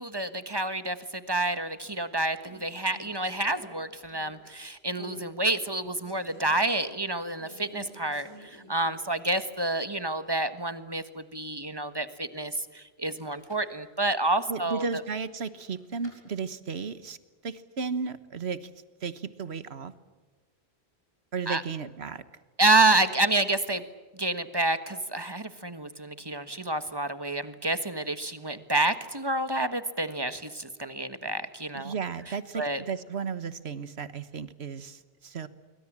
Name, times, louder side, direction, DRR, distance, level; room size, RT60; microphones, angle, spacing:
voice 1, 0.0-14.8 21.5-21.6 22.6-23.8 24.1-31.9 32.5-32.8, right 2 dB, 25° right, 11 dB, 1.5 m, -28 dB
sound 1, 1.6-2.0 2.4-4.5 5.0-5.3 5.7-6.7 7.4-9.2 9.5-9.6 13.1-13.7 14.6-16.2, left 1 dB, 25° left, 7.0 m, -50 dB
voice 2, 14.5-17.2 17.4-18.7 19.0-19.9 21.3-22.2 31.7-35.5, right 5 dB, 85° right, 14 dB, 1.5 m, -34 dB
26.0 x 24.0 x 7.5 m, 1.3 s
omnidirectional pair, 1.1 m